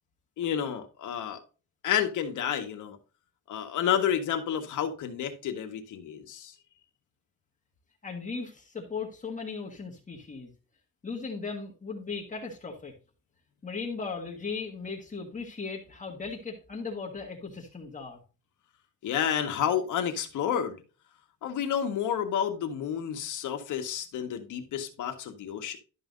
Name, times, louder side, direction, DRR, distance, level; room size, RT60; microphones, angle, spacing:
voice 1, 0.4-1.4 1.8-3.0 3.5-6.5 19.0-20.8 21.4-25.8, left 9 dB, 75° left, 1.7 m, -30 dB
voice 2, 8.0-10.5 11.0-12.9 13.6-18.2, left 4 dB, 25° left, 1.6 m, -37 dB
12.5 x 5.7 x 2.7 m
cardioid pair, 145°, 31 cm